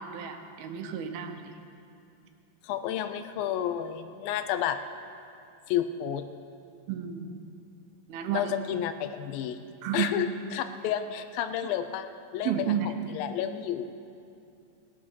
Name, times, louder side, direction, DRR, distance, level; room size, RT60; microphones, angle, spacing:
voice 1, 0.0-1.5 6.9-7.4 8.1-8.5 9.8-10.2 12.4-12.9, right 8 dB, 85° right, 6 dB, 2.8 m, -32 dB
voice 2, 2.6-4.8 5.7-6.3 8.3-9.6 9.9-12.1 12.3-12.7 13.1-13.9, left 10 dB, 80° left, 9 dB, 2.3 m, -31 dB
19.5 x 7.9 x 6.3 m, 2.6 s
omnidirectional pair, 4.3 m